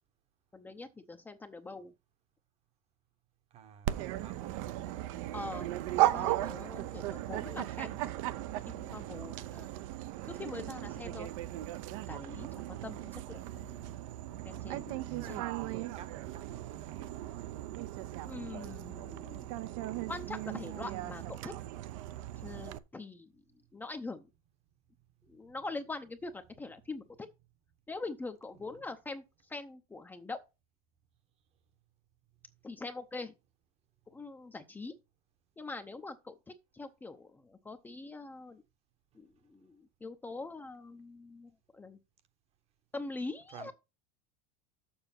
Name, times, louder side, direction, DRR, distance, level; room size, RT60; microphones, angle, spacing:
voice 1, 0.5-1.9 5.3-5.7 6.0-9.7 10.2-11.3 12.1-14.0 14.5-15.0 15.3-15.4 18.2-19.5 20.1-21.5 22.4-23.3 23.7-24.3 25.3-27.3 27.9-30.4 32.6-33.3 34.1-35.0 35.6-38.6 39.1-42.0 42.9-43.7, left 3 dB, 10° left, 0.6 m, -43 dB
voice 2, 3.5-5.2 14.7-17.2 25.2-25.5 28.6-28.9 39.4-39.5 43.5-43.7, right 9 dB, 35° right, 1.0 m, -52 dB
Dog, 3.9-22.8, right 15 dB, 65° right, 0.7 m, -37 dB
7.1 x 6.5 x 5.7 m
supercardioid pair, 140°, 18 cm